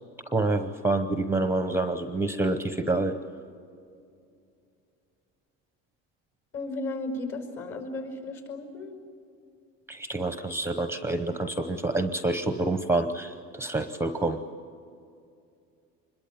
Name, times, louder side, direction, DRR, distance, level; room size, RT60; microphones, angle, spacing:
voice 1, 0.3-3.2 9.9-14.4, right 2 dB, 10° right, 9 dB, 0.8 m, -27 dB
voice 2, 6.5-9.0, left 2 dB, 45° left, 6 dB, 5.3 m, -34 dB
25.5 x 21.5 x 8.8 m, 2.5 s
cardioid pair, 150°, 30 cm